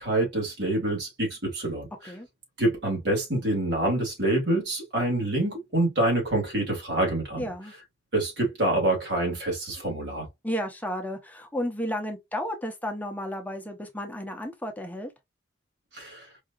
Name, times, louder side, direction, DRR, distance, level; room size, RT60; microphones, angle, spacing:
voice 1, 0.0-2.1 2.6-7.5 8.1-10.3 15.9-16.3, right 1 dB, 75° right, 2.3 m, -26 dB
voice 2, 7.4-7.7 10.4-15.1, equal, 10° left, 0.7 m, -33 dB
4.8 x 2.7 x 2.4 m
head